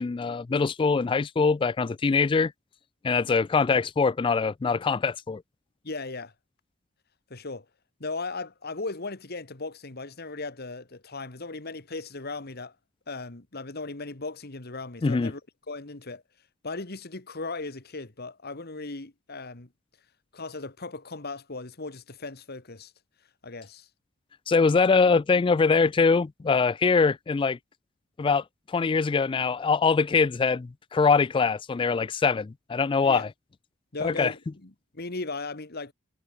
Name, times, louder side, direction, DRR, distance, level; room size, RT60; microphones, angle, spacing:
voice 1, 0.0-2.5 3.0-5.4 15.0-15.3 24.5-27.6 28.2-33.3 34.0-34.3, left 4 dB, 25° left, 0.3 m, -23 dB
voice 2, 5.8-6.3 7.3-7.7 8.0-12.7 13.1-15.4 15.7-16.2 16.6-19.7 20.3-22.9 23.4-23.9 33.0-33.3 33.9-35.9, left 3 dB, 50° left, 1.7 m, -37 dB
head